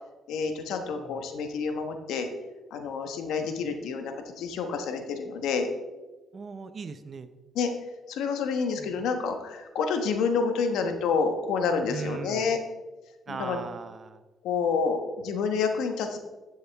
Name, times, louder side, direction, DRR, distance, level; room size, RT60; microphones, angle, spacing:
voice 1, 0.3-2.3 2.7-5.7 7.5-7.7 8.1-12.6 13.3-13.6 14.4-16.2, left 5 dB, 80° left, 6 dB, 1.1 m, -28 dB
voice 2, 0.9-1.3 6.3-7.3 8.8-9.1 11.9-12.5 13.3-14.2, right 4 dB, 40° right, 11 dB, 0.7 m, -39 dB
11.0 x 7.1 x 3.4 m, 1.2 s
cardioid pair, 90°, 0 cm